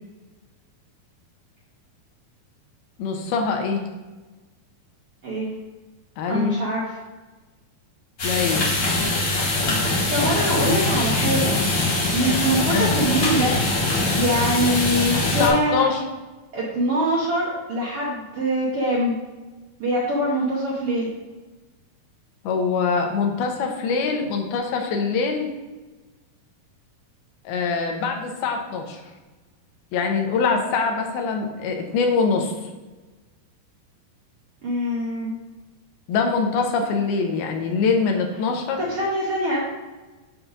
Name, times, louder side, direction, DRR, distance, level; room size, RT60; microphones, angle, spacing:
voice 1, 3.0-3.8 6.2-6.6 8.2-8.7 12.7-12.9 15.4-16.0 22.4-25.5 27.5-29.0 29.9-32.5 36.1-38.8, left 5 dB, 80° left, 3 dB, 2.8 m, -23 dB
voice 2, 5.2-5.5 6.3-7.0 9.8-11.6 12.1-13.6 14.1-15.8 16.5-19.2 19.8-21.1 34.6-35.3 38.8-39.6, right 1 dB, 85° right, -5 dB, 1.2 m, -23 dB
sound 1, 8.2-15.5, left 2 dB, 55° left, 1.3 m, -22 dB
6.8 x 5.9 x 4.0 m, 1.2 s
omnidirectional pair, 4.4 m